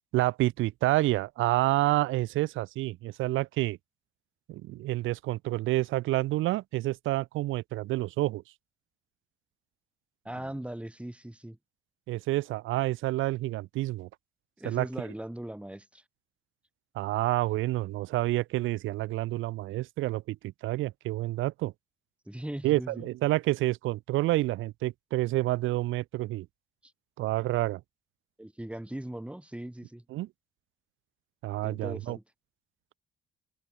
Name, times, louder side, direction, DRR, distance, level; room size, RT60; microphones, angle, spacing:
voice 1, 0.1-3.8 4.5-8.4 12.1-14.1 14.6-14.9 16.9-21.7 22.6-26.5 27.2-27.8 30.1-30.3 31.4-32.2, right 17 dB, 90° right, 0.8 m, -28 dB
voice 2, 10.2-11.6 14.6-16.0 22.3-23.1 26.8-26.9 28.4-30.0 31.6-32.2, right 1 dB, 5° right, 3.9 m, -39 dB
open air
cardioid pair, 90°, 20 cm